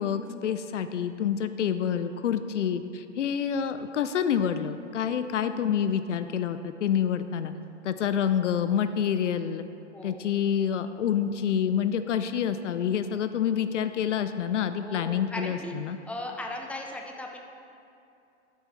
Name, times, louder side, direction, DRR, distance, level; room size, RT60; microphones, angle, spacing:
voice 1, 0.0-7.5 7.8-9.6 10.0-16.0, left 8 dB, 75° left, 11 dB, 0.5 m, -27 dB
voice 2, 9.9-10.2 14.8-17.4, left 2 dB, 5° left, 1 dB, 0.8 m, -38 dB
12.0 x 7.6 x 3.2 m, 2.7 s
figure-of-eight pair, 100°, 36 cm